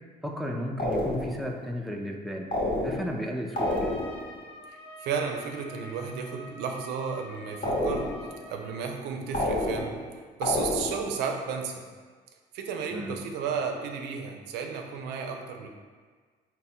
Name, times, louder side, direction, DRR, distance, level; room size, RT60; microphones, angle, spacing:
voice 1, 0.2-3.9 12.9-13.2, equal, ahead, 0 dB, 0.3 m, -34 dB
sound 1, 0.8-1.5 2.5-3.2 3.6-4.3 7.6-8.4 9.3-10.1 10.4-11.1, left 1 dB, 50° left, 1.0 m, -29 dB
Trumpet, 3.5-8.8, left 1 dB, 85° left, 0.6 m, -47 dB
voice 2, 5.0-8.1 8.5-10.0 10.4-11.8 12.5-15.7, right 6 dB, 85° right, 3 dB, 0.4 m, -33 dB
3.6 x 2.1 x 4.2 m, 1.5 s
cardioid pair, 110°, 17 cm